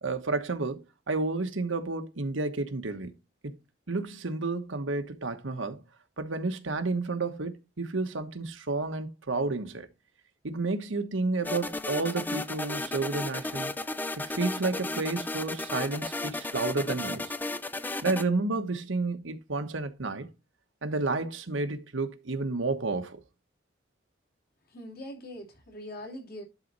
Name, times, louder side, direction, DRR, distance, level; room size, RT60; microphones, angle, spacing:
voice 1, 0.0-3.1 3.4-3.5 3.9-5.8 6.2-9.9 10.4-13.7 14.2-17.3 18.0-20.3 20.8-23.2, right 3 dB, 90° right, 1.2 m, -31 dB
sound 1, 11.4-18.2, left 2 dB, 10° left, 0.3 m, -34 dB
voice 2, 24.7-26.4, equal, 50° left, 2.8 m, -42 dB
11.0 x 4.2 x 4.0 m
head